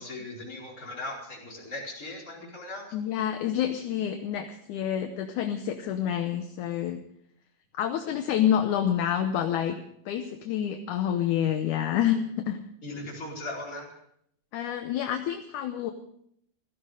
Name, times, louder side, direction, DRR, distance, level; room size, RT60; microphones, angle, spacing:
voice 1, 0.0-2.9 12.8-13.9, left 2 dB, 20° left, -3 dB, 4.7 m, -38 dB
voice 2, 2.9-7.0 7.7-9.8 10.1-12.6 14.5-15.9, left 10 dB, 70° left, 6 dB, 2.0 m, -28 dB
16.5 x 15.0 x 4.9 m, 0.71 s
omnidirectional pair, 4.3 m